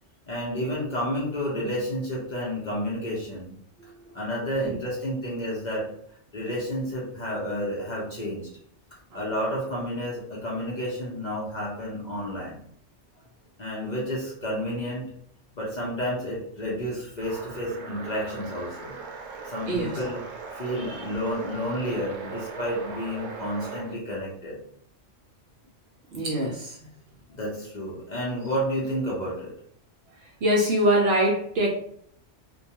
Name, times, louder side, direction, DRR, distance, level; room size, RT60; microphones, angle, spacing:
voice 1, 0.3-3.6 4.1-5.9 6.3-8.4 9.1-12.6 13.6-15.1 15.6-18.9 19.4-20.2 20.5-24.6 27.3-29.5, equal, 45° left, -5 dB, 0.6 m, -30 dB
voice 2, 3.8-4.2 4.7-4.8 19.7-20.0 20.8-21.0 26.1-26.8 30.4-31.7, right 1 dB, 65° right, -1 dB, 0.7 m, -24 dB
sound 1, 17.2-23.9, right 4 dB, 85° right, 1.0 m, -39 dB
2.2 x 2.2 x 2.8 m, 0.65 s
omnidirectional pair, 1.3 m